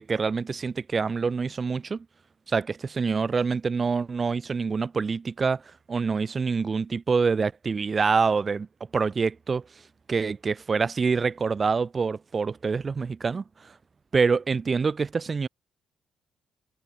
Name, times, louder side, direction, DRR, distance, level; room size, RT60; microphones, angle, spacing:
voice 1, 0.0-2.0 2.5-5.6 5.9-8.7 8.9-9.7 10.1-13.7 14.1-15.5, right 5 dB, 35° right, 1.0 m, -26 dB
cardioid pair, 90°, 0 cm